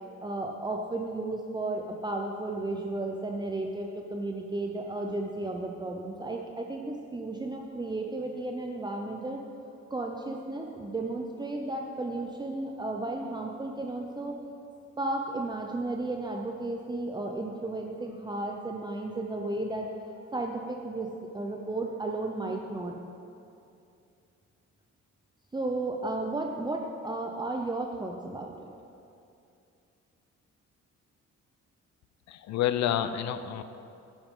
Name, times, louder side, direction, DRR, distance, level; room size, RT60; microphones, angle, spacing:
voice 1, 0.0-9.4 9.9-14.4 15.0-19.9 20.3-22.9 25.5-28.5, right 2 dB, 15° right, 1 dB, 0.7 m, -34 dB
voice 2, 32.3-33.6, left 10 dB, 65° left, 11 dB, 0.6 m, -29 dB
10.5 x 9.9 x 3.8 m, 2.6 s
cardioid pair, 90°, 30 cm